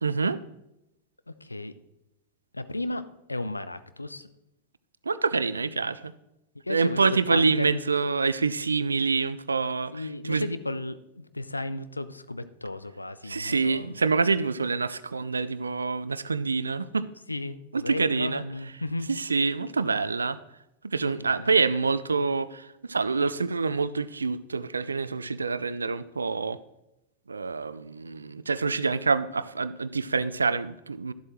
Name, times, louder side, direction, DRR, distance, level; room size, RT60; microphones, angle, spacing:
voice 1, 0.0-0.4 5.0-6.1 6.7-10.5 13.2-17.1 17.7-18.4 19.1-20.4 20.8-26.6 27.3-31.1, right 4 dB, 75° right, 16 dB, 0.4 m, -26 dB
voice 2, 1.3-1.7 2.5-3.0 3.3-4.3 6.6-7.0 7.3-7.8 9.9-13.9 17.3-19.1 21.0-21.5, left 2 dB, 85° left, 13 dB, 0.5 m, -34 dB
12.0 x 7.7 x 3.0 m, 0.88 s
figure-of-eight pair, 90°, 0 cm